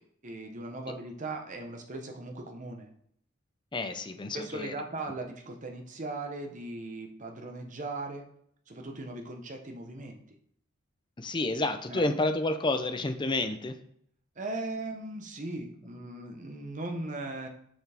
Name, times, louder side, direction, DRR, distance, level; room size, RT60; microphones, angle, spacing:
voice 1, 0.2-2.9 4.3-8.3 8.7-10.2 11.9-12.1 14.4-17.5, right 2 dB, 35° right, 3 dB, 0.9 m, -38 dB
voice 2, 3.7-4.7 11.2-13.8, left 2 dB, 20° left, 8 dB, 0.5 m, -30 dB
6.9 x 6.0 x 3.5 m, 0.68 s
head